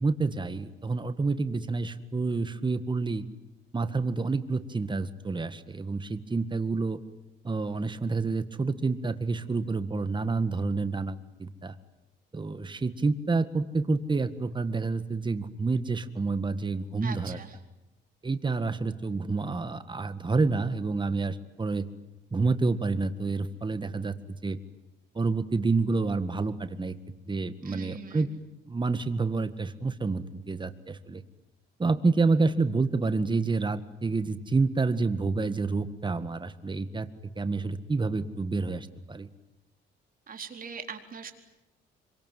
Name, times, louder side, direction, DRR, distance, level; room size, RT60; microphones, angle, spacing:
voice 1, 0.0-3.2 3.7-7.0 7.4-11.8 12.3-17.4 18.2-21.8 22.3-24.6 25.2-27.0 27.3-28.3 28.7-31.2 31.8-37.1 37.4-39.3, right 3 dB, 25° right, 11 dB, 1.8 m, -28 dB
voice 2, 17.0-17.6 27.6-28.4 40.3-41.3, right 6 dB, 45° right, 5 dB, 4.1 m, -41 dB
26.0 x 24.5 x 9.4 m, 0.92 s
cardioid pair, 90°, 20 cm